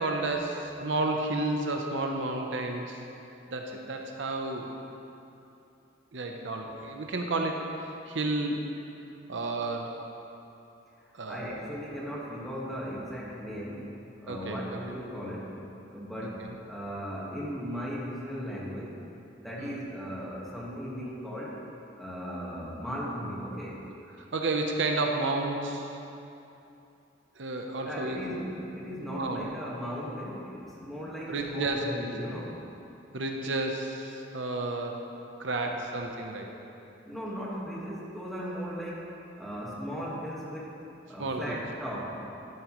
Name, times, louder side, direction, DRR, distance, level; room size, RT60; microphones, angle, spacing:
voice 1, 0.0-3.0 3.5-4.7 6.1-8.6 9.3-9.9 11.1-11.5 14.3-15.0 19.6-19.8 24.1-26.0 27.4-28.2 29.0-29.5 31.3-31.9 33.1-35.0 35.4-36.5 41.2-41.6, right 2 dB, 75° right, 2 dB, 0.8 m, -31 dB
voice 2, 11.0-13.9 14.2-15.6 15.9-19.0 19.4-21.6 22.0-23.8 27.9-32.6 35.6-35.8 37.0-40.8 41.1-42.2, equal, ahead, -6 dB, 1.6 m, -37 dB
12.5 x 8.8 x 3.1 m, 2.8 s
head